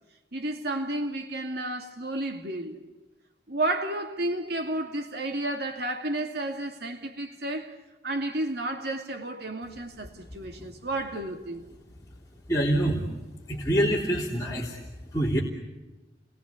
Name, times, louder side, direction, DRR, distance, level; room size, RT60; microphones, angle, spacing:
voice 1, 0.3-2.8 3.5-7.7 8.0-11.6, right 1 dB, 60° right, 2.7 m, -31 dB
voice 2, 12.5-13.0 13.5-14.8 15.1-15.4, right 1 dB, 20° left, 3.6 m, -25 dB
30.0 x 21.0 x 8.6 m
head